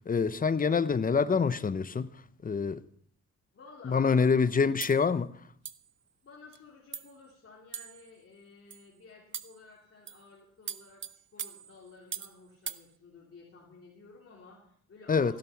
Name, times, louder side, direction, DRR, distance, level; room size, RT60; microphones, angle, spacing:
voice 1, 0.1-2.1 2.4-2.8 3.8-5.3 15.1-15.3, left 5 dB, 30° left, 0.7 m, -26 dB
voice 2, 3.5-4.3 6.2-15.4, left 4 dB, 45° left, 3.4 m, -54 dB
sound 1, 4.8-5.0 5.6-5.9 6.5-6.6 6.9-7.2 7.7-8.1 8.7-8.9 9.3-9.6 10.1-10.3 10.7-12.4 12.7-12.8, right 7 dB, 40° right, 0.8 m, -41 dB
16.0 x 11.5 x 5.8 m
cardioid pair, 95°, 30 cm